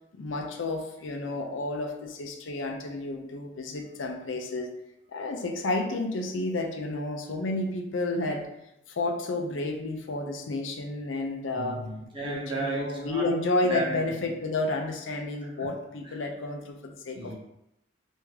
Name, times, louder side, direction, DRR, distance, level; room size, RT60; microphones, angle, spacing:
voice 1, 0.1-4.7 5.1-8.5 8.9-11.8 12.2-17.3, left 2 dB, 80° left, 3 dB, 0.6 m, -31 dB
voice 2, 11.5-13.3 13.7-14.0 15.4-15.7 16.0-16.2 17.1-17.3, right 2 dB, 25° right, -4 dB, 0.9 m, -34 dB
3.4 x 2.6 x 3.2 m, 0.82 s
head